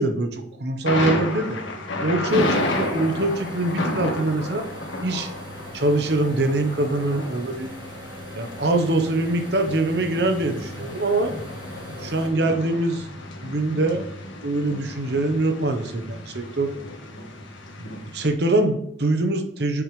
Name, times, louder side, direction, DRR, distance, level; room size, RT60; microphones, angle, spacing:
voice 1, 0.0-1.6 2.0-4.7 5.0-5.3 5.7-7.7 8.3-11.3 12.0-13.1 13.4-14.0 14.4-16.7 17.8-19.8, right 2 dB, 60° right, 6 dB, 1.0 m, -23 dB
Thunder, 0.9-18.3, left 1 dB, 85° left, 1.6 m, -32 dB
sound 1, 2.3-12.3, equal, 25° right, 1.8 m, -41 dB
8.3 x 7.3 x 3.2 m, 0.72 s
head